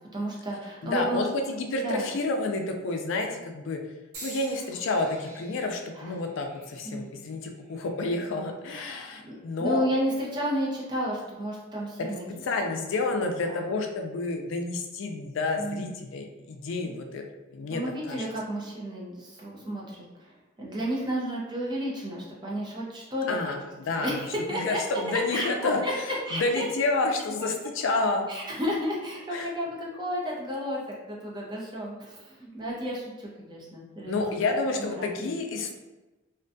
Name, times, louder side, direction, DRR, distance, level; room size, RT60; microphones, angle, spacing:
voice 1, 0.1-1.2 1.8-2.1 6.0-6.2 6.8-7.1 8.7-12.2 13.5-13.7 15.6-15.9 16.8-17.0 17.7-23.3 23.9-24.8 25.1-25.9 26.3-26.7 28.3-34.2 34.5-35.4, equal, 20° right, -4 dB, 0.5 m, -32 dB
voice 2, 0.8-3.8 4.2-9.8 12.0-12.1 12.4-17.2 17.5-17.8 18.1-18.2 23.3-24.2 24.5-26.0 26.3-28.2 29.3-29.5 34.1-35.8, left 3 dB, 65° left, 3 dB, 0.4 m, -29 dB
sound 1, 4.1-8.3 9.0-9.4 10.4-10.6, right 1 dB, 90° right, 0.8 m, -48 dB
2.4 x 2.2 x 2.5 m, 1.1 s
head